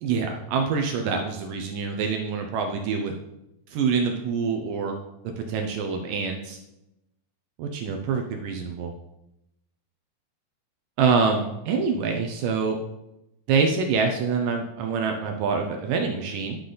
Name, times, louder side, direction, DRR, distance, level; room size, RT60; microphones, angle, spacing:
voice 1, 0.0-3.1 3.7-5.0 5.2-6.6 7.6-8.9 11.0-12.8 13.5-16.6, right 5 dB, 75° right, 4 dB, 2.1 m, -25 dB
11.5 x 6.7 x 3.9 m, 0.89 s
omnidirectional pair, 4.4 m